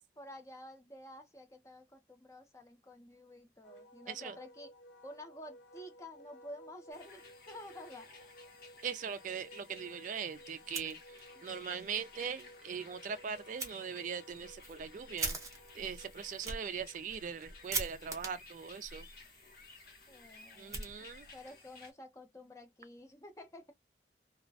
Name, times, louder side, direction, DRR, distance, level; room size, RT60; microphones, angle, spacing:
voice 1, 0.2-4.7 5.0-8.1 20.1-23.7, left 1 dB, 15° left, 0.5 m, -51 dB
Wind instrument woodwind instrument, 3.6-18.3, equal, 85° left, 0.9 m, -57 dB
voice 2, 4.1-4.4 8.8-15.4 15.7-19.1 20.6-21.3, right 7 dB, 45° right, 0.3 m, -41 dB
sound 1, 6.9-21.9, left 4 dB, 55° left, 0.8 m, -56 dB
Fire, 10.6-11.5 11.8-11.9 12.4-12.5 13.6-13.7 14.3-21.4, right 3 dB, 20° right, 0.7 m, -43 dB
2.3 x 2.1 x 2.5 m
head